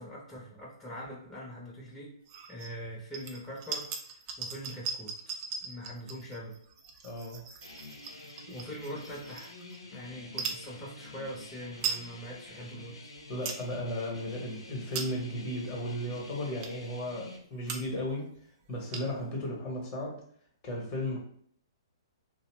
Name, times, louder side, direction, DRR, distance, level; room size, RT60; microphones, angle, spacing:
voice 1, 0.0-2.1 2.5-5.2 5.6-6.5 8.1-9.5 9.9-13.0, equal, 10° left, -6 dB, 0.7 m, -43 dB
sound 1, 2.2-2.7 3.1-9.8 10.3-10.6 11.3-11.4 11.6-12.0 12.5-12.6 13.1-13.6 14.1-14.3 14.7-15.4 16.0-16.1 16.6-16.9 17.4-17.5 17.6-18.1 18.3-18.4 18.6-19.3, right 6 dB, 35° right, 0.4 m, -39 dB
voice 2, 7.0-7.4 8.5-8.6 13.3-18.3 18.7-20.2 20.6-21.2, left 1 dB, 35° left, -1 dB, 1.0 m, -35 dB
sound 2, 7.6-17.4, left 2 dB, 85° left, 0.7 m, -48 dB
2.6 x 2.1 x 3.1 m, 0.62 s
hypercardioid pair, 125°, 3 cm